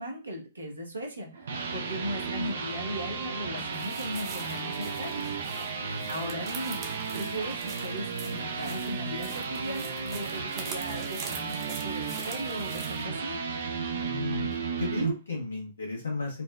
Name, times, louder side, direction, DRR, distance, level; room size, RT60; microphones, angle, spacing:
voice 1, 0.0-5.2 6.1-6.8 7.1-13.4, equal, 85° right, 1 dB, 1.0 m, -37 dB
sound 1, 1.2-15.1, right 5 dB, 65° right, 0.6 m, -34 dB
sound 2, 3.6-13.1, right 5 dB, 30° right, 0.8 m, -45 dB
voice 2, 14.0-16.4, left 3 dB, 75° left, -2 dB, 1.0 m, -34 dB
4.2 x 2.1 x 2.3 m, 0.31 s
figure-of-eight pair, 115°, 0 cm